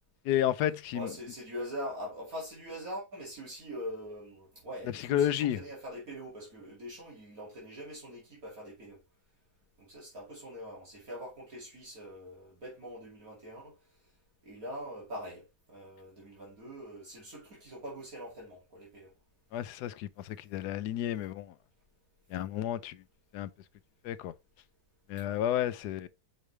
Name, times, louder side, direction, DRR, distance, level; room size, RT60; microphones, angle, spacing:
voice 1, 0.2-1.1 5.1-5.6 19.5-21.5 22.3-23.0 23.3-23.5 24.0-24.3 25.1-26.1, left 11 dB, 85° left, 1.2 m, -31 dB
voice 2, 0.9-9.0 9.8-13.7 14.4-19.1 25.2-25.4, equal, 60° right, 3.0 m, -43 dB
6.3 x 5.1 x 3.2 m
omnidirectional pair, 1.7 m